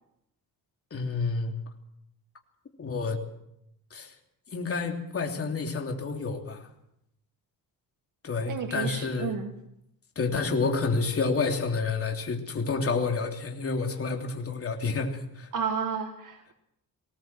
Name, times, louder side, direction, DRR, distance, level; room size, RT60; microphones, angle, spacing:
voice 1, 0.9-1.5 2.8-3.2 3.9-4.1 4.5-6.7 8.2-9.3 10.1-15.5, left 4 dB, 40° left, 2 dB, 3.2 m, -29 dB
voice 2, 8.5-9.5 15.5-16.5, right 6 dB, 60° right, 5 dB, 1.7 m, -32 dB
20.0 x 18.5 x 7.6 m, 0.80 s
cardioid pair, 125°, 36 cm